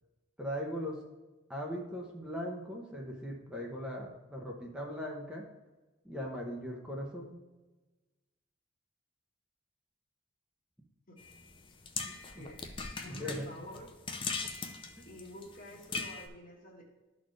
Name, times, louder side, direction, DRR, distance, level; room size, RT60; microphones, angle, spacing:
voice 1, 0.4-1.0 1.5-5.4 6.0-7.3 12.1-12.4 13.1-13.4, equal, 5° right, -2 dB, 0.8 m, -39 dB
sound 1, 11.2-16.3, left 4 dB, 25° left, 0.6 m, -40 dB
voice 2, 13.0-13.9 15.1-16.8, left 1 dB, 45° left, 0 dB, 1.3 m, -48 dB
12.0 x 4.2 x 3.2 m, 1.2 s
head